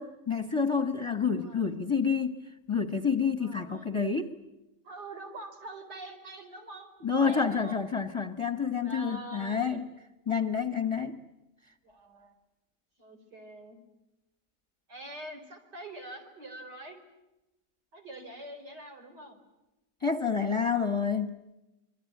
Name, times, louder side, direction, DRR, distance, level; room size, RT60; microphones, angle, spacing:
voice 1, 0.0-2.3 2.7-4.3 7.0-9.8 10.3-11.2 20.0-21.4, left 6 dB, 20° left, 8 dB, 1.2 m, -28 dB
voice 2, 1.4-1.7 3.4-3.9 4.8-6.9 7.2-7.8 8.8-9.8 11.8-12.3 13.0-13.8 14.9-17.0 17.9-19.4 21.0-21.1, right 1 dB, 85° right, 3 dB, 5.3 m, -44 dB
26.5 x 23.0 x 9.4 m, 0.98 s
omnidirectional pair, 1.8 m